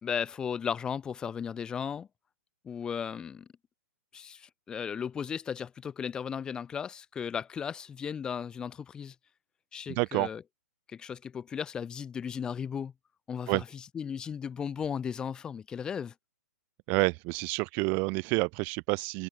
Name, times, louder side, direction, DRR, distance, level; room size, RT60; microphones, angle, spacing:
voice 1, 0.0-2.1 2.6-3.5 4.1-9.1 9.7-10.4 10.9-12.9 13.3-13.6 13.9-16.1, left 7 dB, 10° left, 1.9 m, -35 dB
voice 2, 9.9-10.3 13.5-13.6 16.9-19.3, right 32 dB, 20° right, 0.7 m, -28 dB
hypercardioid pair, 175°, 9 cm